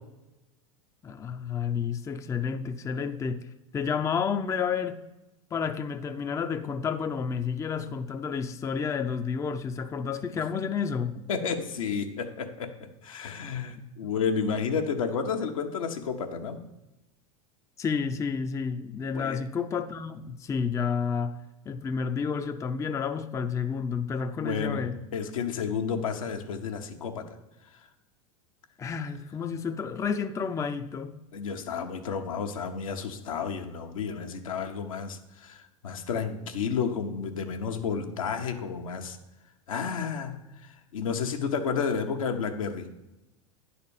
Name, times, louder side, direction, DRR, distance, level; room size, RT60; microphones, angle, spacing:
voice 1, 1.0-5.0 5.5-11.1 14.0-14.1 17.8-21.4 21.7-25.0 28.8-31.2, left 6 dB, 15° left, 0.5 m, -30 dB
voice 2, 11.3-16.6 19.1-19.4 24.4-27.4 31.3-39.2 39.7-42.9, left 6 dB, 80° left, 1.1 m, -31 dB
9.8 x 4.2 x 7.0 m
hypercardioid pair, 95°, 17 cm